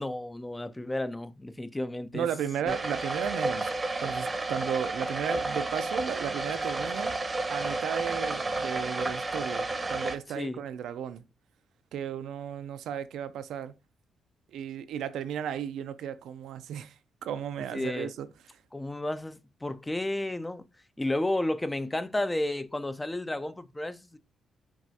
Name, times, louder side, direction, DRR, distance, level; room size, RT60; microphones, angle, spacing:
voice 1, 0.0-2.3 2.7-2.8 10.3-10.6 17.7-18.1 18.7-20.6 21.0-24.2, left 1 dB, 15° left, 0.4 m, -32 dB
voice 2, 2.1-3.7 4.0-7.2 7.5-11.2 11.9-13.7 14.5-18.3, right 9 dB, 80° right, 0.3 m, -34 dB
sound 1, 2.7-10.2, right 2 dB, 25° right, 0.7 m, -31 dB
5.9 x 2.3 x 2.7 m
cardioid pair, 70°, 0 cm